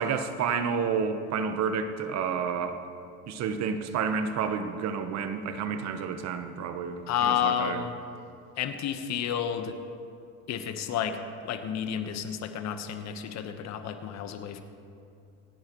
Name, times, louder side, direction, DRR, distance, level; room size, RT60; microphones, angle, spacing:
voice 1, 0.0-2.8 3.3-7.8, right 6 dB, 55° right, 8 dB, 1.1 m, -30 dB
voice 2, 7.1-7.9 8.6-9.8 10.5-11.2 11.4-14.6, left 9 dB, 55° left, 7 dB, 1.3 m, -30 dB
27.0 x 9.6 x 3.2 m, 2.5 s
supercardioid pair, 105°, 33 cm